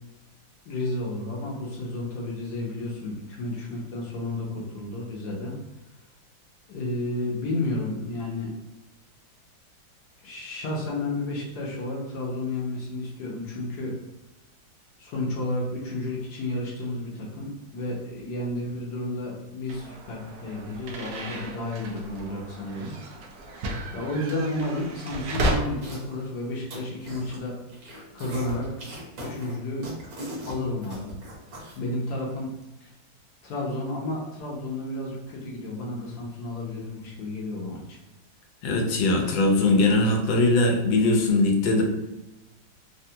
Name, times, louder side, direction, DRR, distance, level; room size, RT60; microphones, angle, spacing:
voice 1, 0.7-5.6 6.7-8.6 10.2-13.9 15.0-22.9 23.5-23.6 23.9-27.5 28.1-29.9 30.4-31.1 31.8-32.5 32.8-32.9 33.4-38.0, left 2 dB, 65° left, -3 dB, 1.1 m, -32 dB
sound 1, 19.7-25.5, right 1 dB, 75° right, 0.8 m, -33 dB
sound 2, 25.8-26.2 26.5-27.4 27.7-31.8, equal, 55° right, 1.2 m, -40 dB
voice 2, 38.6-41.8, left 2 dB, 90° left, 2 dB, 1.4 m, -21 dB
3.5 x 2.2 x 2.7 m, 1.0 s
omnidirectional pair, 2.0 m